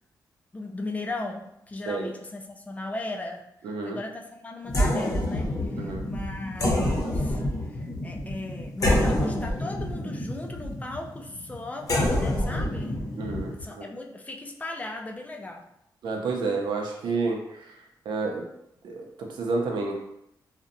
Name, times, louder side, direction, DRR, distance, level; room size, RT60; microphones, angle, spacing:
voice 1, 0.5-3.5 3.9-13.0 13.6-15.7, left 2 dB, 20° left, 2 dB, 0.3 m, -37 dB
voice 2, 3.6-4.0 5.8-6.1 13.2-13.9 16.0-18.5 18.8-19.9, right 3 dB, 80° right, 1 dB, 0.5 m, -30 dB
sound 1, 4.6-13.6, left 1 dB, 45° left, 0.7 m, -27 dB
2.6 x 2.1 x 2.5 m, 0.79 s
cardioid pair, 95°, 8 cm